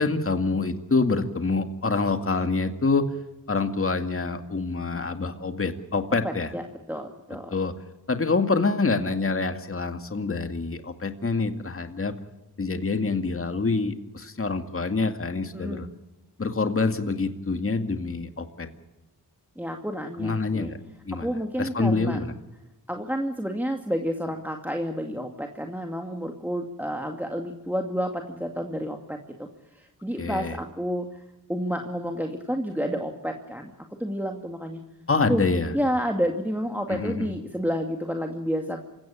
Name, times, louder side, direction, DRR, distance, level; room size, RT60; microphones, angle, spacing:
voice 1, 0.0-3.1 3.5-6.5 7.5-7.7 8.1-12.1 12.6-15.9 16.4-18.7 20.2-20.8 21.1-21.3 21.6-22.3 30.2-30.6 35.1-35.7 36.9-37.3, left 3 dB, 35° left, 7 dB, 2.1 m, -26 dB
voice 2, 6.2-6.6 6.9-7.5 15.5-15.8 19.6-20.7 21.2-22.2 22.9-31.2 31.5-33.7 34.0-34.8 35.3-35.4 35.7-38.8, equal, 5° right, 3 dB, 2.3 m, -30 dB
27.5 x 16.5 x 8.8 m, 1.0 s
cardioid pair, 80°, 39 cm